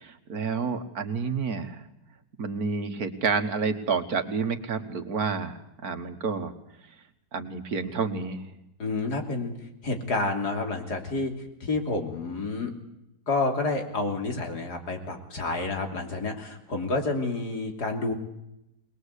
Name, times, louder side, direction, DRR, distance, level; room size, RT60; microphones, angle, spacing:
voice 1, 0.0-1.8 2.4-6.5 7.3-8.5, right 5 dB, 65° right, 8 dB, 2.1 m, -29 dB
voice 2, 8.8-9.5 9.8-11.3 11.6-12.7 13.3-18.1, left 3 dB, 75° left, 4 dB, 3.7 m, -29 dB
22.0 x 21.0 x 8.3 m, 0.84 s
omnidirectional pair, 1.7 m